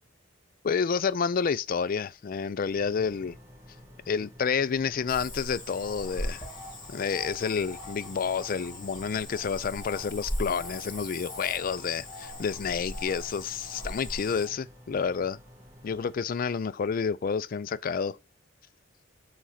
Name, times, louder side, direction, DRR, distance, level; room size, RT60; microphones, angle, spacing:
voice 1, 0.6-3.4 4.1-6.4 6.9-15.4 15.8-18.2, left 6 dB, 45° left, 0.4 m, -29 dB
sound 1, 2.7-16.2, equal, 15° right, 1.8 m, -52 dB
Cricket / Frog, 5.1-14.5, left 1 dB, 25° left, 2.2 m, -39 dB
4.9 x 4.0 x 5.6 m
head